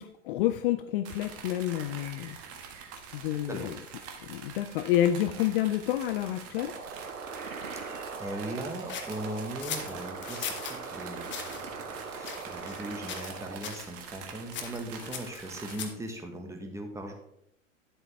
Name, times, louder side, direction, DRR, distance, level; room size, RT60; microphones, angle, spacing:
voice 1, 0.0-2.4 3.1-3.8 4.3-6.7, left 12 dB, 45° left, 10 dB, 0.5 m, -29 dB
sound 1, 1.0-15.8, right 6 dB, 35° right, 1.5 m, -45 dB
voice 2, 3.3-3.7 7.7-17.1, right 1 dB, 5° right, 3 dB, 1.4 m, -39 dB
sound 2, 6.6-13.6, right 4 dB, 85° right, 1.0 m, -41 dB
sound 3, 8.9-10.8 11.3-11.6 12.2-12.8 13.1-13.4 13.6-13.9 14.5-16.1, left 8 dB, 30° left, 1.3 m, -39 dB
10.0 x 7.9 x 3.3 m, 0.75 s
figure-of-eight pair, 95°, 40 cm